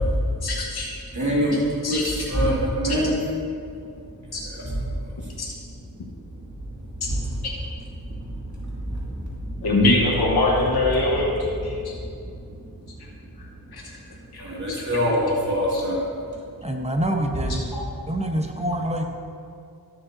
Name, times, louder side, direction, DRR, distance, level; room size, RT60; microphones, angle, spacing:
voice 1, 0.4-0.9 1.5-2.2 2.8-3.0 4.3-4.4 5.4-5.5 7.4-7.5 9.6-12.0 13.0-13.1 13.4-13.9 14.3-15.0 15.7-15.8 17.7-17.8, left 2 dB, 85° left, -3 dB, 1.3 m, -24 dB
voice 2, 1.1-3.2 4.6-4.7 8.2-9.2 9.5-9.6 14.4-16.0, equal, 50° right, -6 dB, 2.3 m, -24 dB
voice 3, 16.6-17.7 18.1-19.0, right 1 dB, 15° right, 3 dB, 1.0 m, -26 dB
13.0 x 7.2 x 2.7 m, 2.5 s
cardioid pair, 50°, 37 cm